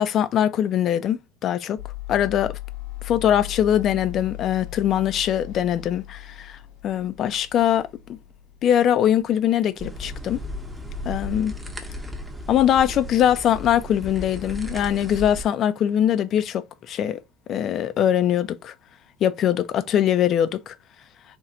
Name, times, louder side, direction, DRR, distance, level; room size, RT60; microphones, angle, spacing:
voice 1, 0.0-1.8 2.1-2.6 3.0-6.6 6.8-8.2 8.6-10.4 11.0-11.5 12.5-17.2 17.5-18.7 19.2-20.7, left 10 dB, 40° left, 0.6 m, -22 dB
sound 1, 1.8-9.9, left 17 dB, 75° left, 1.1 m, -38 dB
sound 2, 9.8-15.4, left 1 dB, 5° right, 1.0 m, -35 dB
4.4 x 3.1 x 3.7 m
cardioid pair, 135°, 0 cm